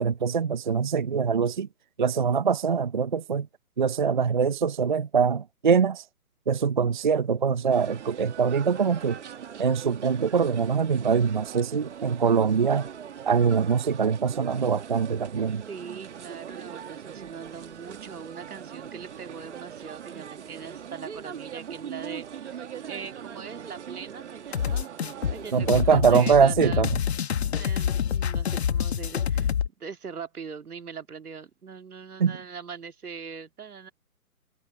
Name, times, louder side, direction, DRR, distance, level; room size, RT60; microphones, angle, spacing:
voice 1, 0.0-1.7 2.0-3.5 3.8-6.0 6.5-9.2 9.6-12.9 13.3-15.6 25.5-26.9 32.2-32.3, right 6 dB, 35° right, 0.6 m, -23 dB
sound 1, 7.7-26.0, right 8 dB, 50° right, 1.8 m, -41 dB
voice 2, 15.7-24.9 25.3-26.8 27.5-33.9, right 6 dB, 75° right, 2.2 m, -41 dB
sound 2, 24.5-29.7, left 8 dB, 45° left, 1.0 m, -27 dB
hypercardioid pair, 155°, 45 cm